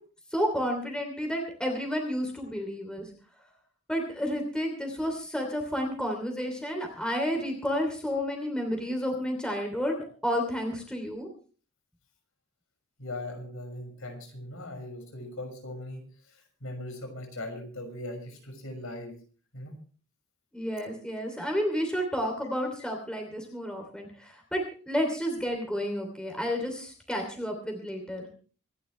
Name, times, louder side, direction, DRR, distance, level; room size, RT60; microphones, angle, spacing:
voice 1, 0.3-3.1 3.9-11.3 20.5-28.3, equal, 5° left, 3 dB, 2.9 m, -31 dB
voice 2, 13.0-19.2 19.5-19.7, left 1 dB, 70° left, 4 dB, 6.2 m, -40 dB
26.5 x 11.5 x 3.3 m, 0.40 s
head